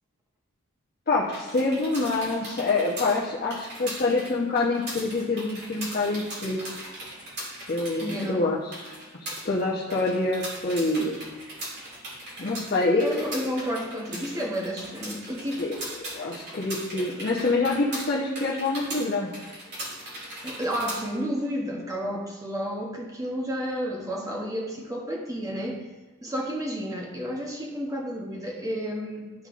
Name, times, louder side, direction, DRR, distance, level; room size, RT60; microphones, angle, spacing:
voice 1, 1.1-6.8 7.7-8.9 9.2-11.2 12.4-13.2 15.6-15.8 16.1-19.3, left 3 dB, 40° left, -6 dB, 0.9 m, -26 dB
sound 1, 1.2-21.0, right 1 dB, 50° right, 2.4 m, -39 dB
voice 2, 8.0-8.4 13.0-15.6 20.4-25.8 26.2-29.3, equal, 15° right, 0 dB, 1.0 m, -31 dB
12.0 x 5.3 x 2.5 m, 1.3 s
head